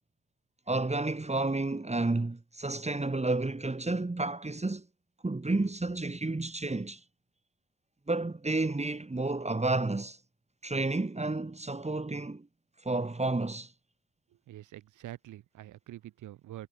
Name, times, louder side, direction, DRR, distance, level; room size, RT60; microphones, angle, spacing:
voice 1, 0.7-4.8 5.2-7.0 8.1-10.2 10.6-12.5 12.8-13.7, right 2 dB, 20° right, 3.2 m, -31 dB
voice 2, 14.3-16.7, right 14 dB, 75° right, 2.4 m, -46 dB
hypercardioid pair, 40°, 31 cm